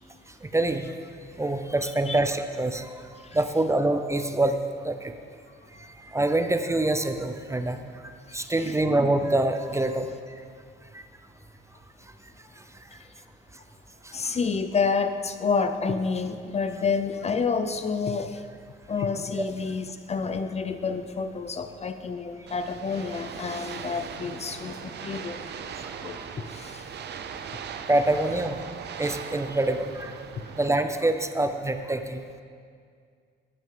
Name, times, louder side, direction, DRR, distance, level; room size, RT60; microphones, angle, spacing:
voice 1, 0.4-0.9 1.4-2.9 3.3-4.6 4.8-5.1 5.8-7.8 8.3-10.1 10.9-11.0 19.4-19.5 26.2-26.3 27.9-28.6 29.0-30.1 30.6-32.2, right 2 dB, 15° right, 8 dB, 0.5 m, -25 dB
voice 2, 8.4-8.8 13.0-13.1 14.1-18.4 18.9-25.6 26.0-26.9, left 5 dB, 35° left, 9 dB, 0.5 m, -29 dB
sound 1, 22.5-30.7, right 7 dB, 60° right, 0.6 m, -39 dB
11.5 x 9.3 x 3.7 m, 2.2 s
cardioid pair, 90°, 20 cm